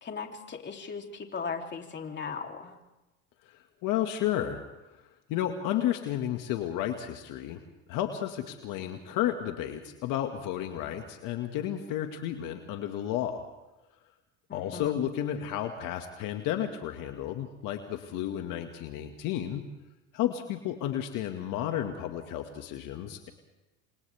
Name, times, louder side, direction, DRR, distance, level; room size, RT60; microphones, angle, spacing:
voice 1, 0.0-2.8 14.5-15.0, left 5 dB, 30° left, 3 dB, 3.1 m, -38 dB
voice 2, 3.5-4.6 4.9-5.0 5.3-7.6 7.9-13.4 14.5-19.6 20.1-23.3, left 11 dB, 65° left, 5 dB, 2.0 m, -32 dB
29.5 x 25.5 x 3.5 m, 1.0 s
supercardioid pair, 90°, 34 cm